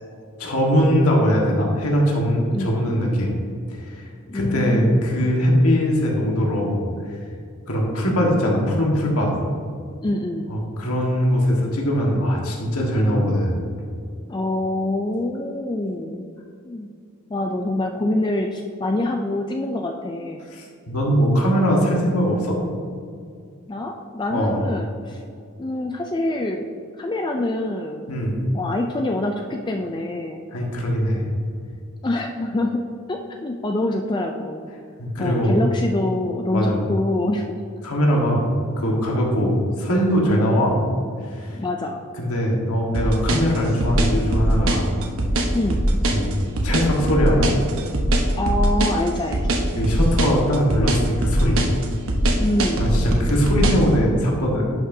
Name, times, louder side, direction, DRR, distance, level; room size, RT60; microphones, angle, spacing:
voice 1, 0.4-3.3 3.7-4.0 4.3-7.2 7.7-9.3 10.5-13.6 20.5-22.6 24.3-24.6 28.1-28.4 30.5-31.2 35.0-35.6 36.5-36.8 37.8-38.5 38.8-40.8 41.2-41.6 42.2-44.9 46.1-46.3 46.6-47.5 49.7-51.7 52.8-54.6, equal, 90° left, -2 dB, 1.5 m, -21 dB
voice 2, 4.3-5.1 10.0-10.6 14.3-16.3 16.6-16.9 17.3-20.4 23.7-25.2 25.6-26.7 27.0-28.1 28.5-30.4 32.0-34.7 35.2-37.4 41.5-42.0 45.5-45.9 48.3-49.6 52.4-52.9, left 1 dB, 20° left, 3 dB, 0.3 m, -25 dB
sound 1, 42.9-53.9, right 1 dB, 70° right, 1.0 m, -21 dB
11.0 x 5.9 x 2.7 m, 2.3 s
head